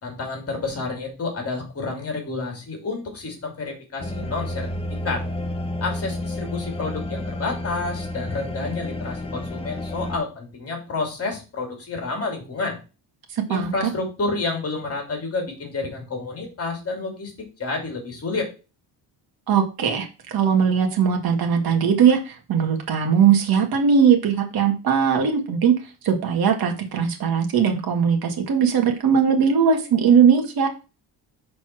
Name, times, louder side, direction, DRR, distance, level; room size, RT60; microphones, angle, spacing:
voice 1, 0.0-4.7 5.0-5.2 5.8-12.8 13.5-17.3 17.6-18.5, left 3 dB, 35° left, 2 dB, 3.0 m, -29 dB
sound 1, 4.0-10.2, left 1 dB, 15° left, 0.9 m, -30 dB
voice 2, 13.3-13.7 19.5-25.7 26.0-30.7, right 7 dB, 55° right, 3 dB, 1.7 m, -19 dB
6.2 x 4.2 x 6.1 m, 0.32 s
cardioid pair, 120°, 43 cm